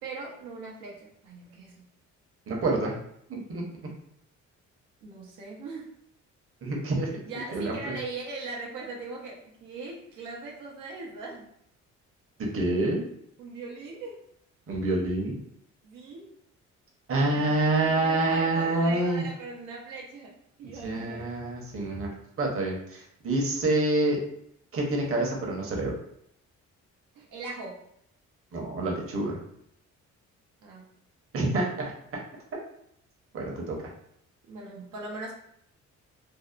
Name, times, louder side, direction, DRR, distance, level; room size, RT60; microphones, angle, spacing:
voice 1, 0.0-1.8 5.0-5.9 7.3-11.4 13.4-14.2 15.8-16.3 17.1-17.5 17.8-20.3 20.6-21.3 27.2-27.8 30.6-30.9 34.5-35.3, right 3 dB, 90° right, -2 dB, 0.6 m, -40 dB
voice 2, 2.5-3.0 3.3-3.6 6.6-7.2 7.5-8.0 12.4-13.0 14.7-15.4 17.1-19.3 20.7-22.1 22.4-24.2 24.7-25.9 28.5-29.4 31.3-31.9 33.3-33.9, right 2 dB, 45° right, -1 dB, 0.8 m, -27 dB
2.6 x 2.0 x 2.4 m, 0.72 s
cardioid pair, 90°, 30 cm